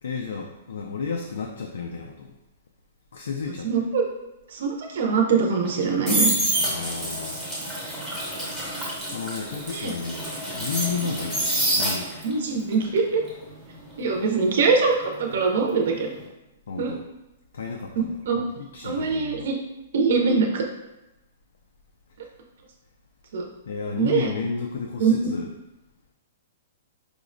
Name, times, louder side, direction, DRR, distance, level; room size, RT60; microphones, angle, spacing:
voice 1, 0.0-2.3 3.1-3.9 6.6-7.4 9.1-12.1 16.7-17.0 17.5-18.5 18.7-19.5 23.7-25.5, left 5 dB, 90° left, 3 dB, 0.3 m, -32 dB
voice 2, 3.6-4.0 4.5-6.3 9.7-10.0 12.2-13.2 14.0-16.1 16.8-16.9 18.0-18.4 18.8-19.5 19.9-20.6 23.3-23.5 24.0-24.3 25.0-25.1, right 5 dB, 50° right, 1 dB, 0.5 m, -23 dB
sound 1, 5.6-12.4 12.7-15.6 15.9-16.2, right 1 dB, ahead, 0.7 m, -28 dB
4.7 x 2.1 x 2.5 m, 0.98 s
hypercardioid pair, 180°, 0 cm